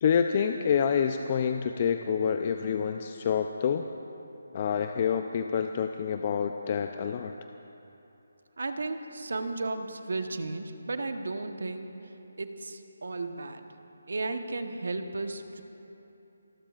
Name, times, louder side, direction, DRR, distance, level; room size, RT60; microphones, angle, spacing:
voice 1, 0.0-3.8 4.5-7.3, left 7 dB, 35° left, 6 dB, 0.5 m, -27 dB
voice 2, 8.6-11.9 12.4-13.7 14.1-15.6, right 3 dB, 70° right, 6 dB, 1.2 m, -34 dB
27.5 x 20.5 x 2.5 m, 3.0 s
figure-of-eight pair, 155°, 0 cm